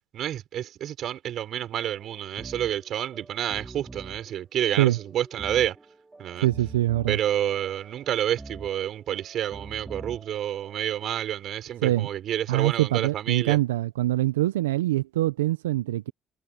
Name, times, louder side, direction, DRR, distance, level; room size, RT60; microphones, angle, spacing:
voice 1, 0.1-5.8 6.2-6.5 7.1-13.6, right 11 dB, 60° right, 6.1 m, -29 dB
sound 1, 1.8-11.3, right 3 dB, 20° right, 3.9 m, -45 dB
voice 2, 6.4-7.2 11.8-12.1 12.5-16.1, right 16 dB, 85° right, 0.7 m, -24 dB
hypercardioid pair, 60°, 0 cm